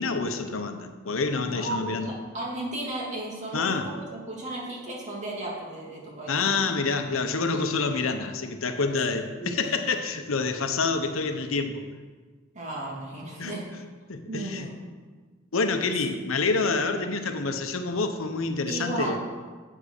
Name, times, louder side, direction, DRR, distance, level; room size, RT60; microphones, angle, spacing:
voice 1, 0.0-2.1 3.5-3.9 6.3-11.8 13.4-13.5 14.1-14.7 15.5-19.2, left 4 dB, 75° left, 7 dB, 0.9 m, -27 dB
voice 2, 1.4-6.4 9.4-9.8 12.5-13.8 14.3-14.8 18.7-19.2, right 1 dB, 35° right, -4 dB, 2.7 m, -34 dB
8.6 x 7.4 x 6.5 m, 1.4 s
head